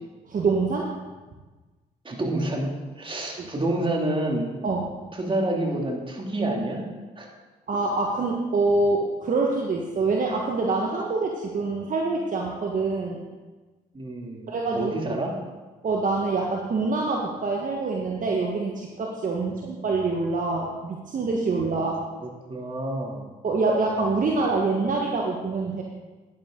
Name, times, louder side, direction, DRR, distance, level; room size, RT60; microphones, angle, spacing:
voice 1, 0.3-0.9 3.4-3.5 4.6-4.9 7.7-13.2 14.5-15.2 15.8-21.9 23.4-25.8, right 3 dB, 50° right, -1 dB, 1.4 m, -25 dB
voice 2, 2.0-2.7 3.0-4.5 5.1-6.9 7.2-7.3 13.9-15.4 19.5-19.6 21.8-21.9 22.2-23.3, right 1 dB, 30° right, 0 dB, 2.7 m, -28 dB
10.0 x 10.0 x 3.9 m, 1.3 s
supercardioid pair, 60°, 18 cm